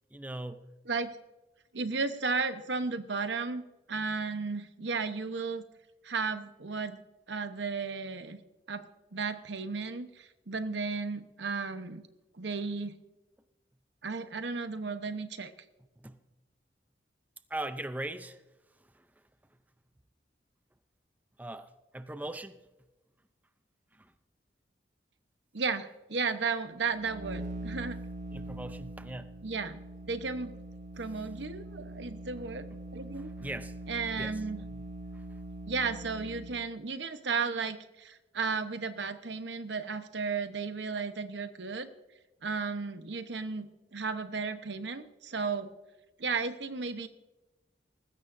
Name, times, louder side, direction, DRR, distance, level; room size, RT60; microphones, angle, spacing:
voice 1, 0.1-0.6 16.0-16.2 17.5-18.4 21.4-22.6 24.0-24.1 28.3-29.3 33.2-33.7 34.2-34.4, right 1 dB, 10° right, 0.5 m, -39 dB
voice 2, 1.7-3.6 3.9-5.6 6.0-8.4 8.7-12.0 12.3-13.0 14.0-15.5 25.5-28.0 29.4-30.5 31.0-33.3 33.9-34.6 35.7-41.9 42.4-45.7 46.2-47.1, right 4 dB, 85° right, 1.0 m, -34 dB
sound 1, 26.8-36.7, right 1 dB, 45° right, 0.7 m, -43 dB
19.5 x 16.0 x 2.6 m
head